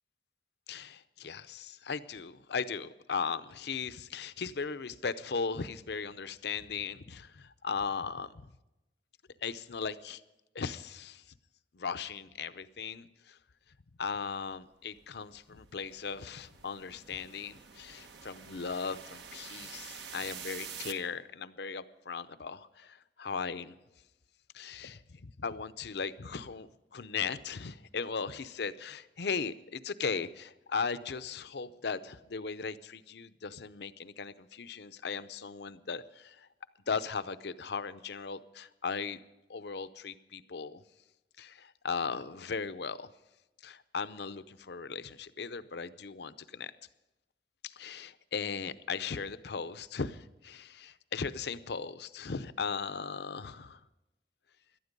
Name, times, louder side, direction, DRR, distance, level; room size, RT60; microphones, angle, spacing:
voice 1, 0.7-8.4 9.4-10.2 10.5-11.2 11.7-13.4 14.0-23.8 24.5-36.5 36.9-39.2 39.5-40.8 41.4-43.1 43.6-46.7 47.6-53.8, left 5 dB, 65° left, 14 dB, 0.6 m, -37 dB
sound 1, 14.9-20.9, right 7 dB, 75° right, 1.2 m, -47 dB
18.0 x 12.5 x 5.3 m, 0.97 s
head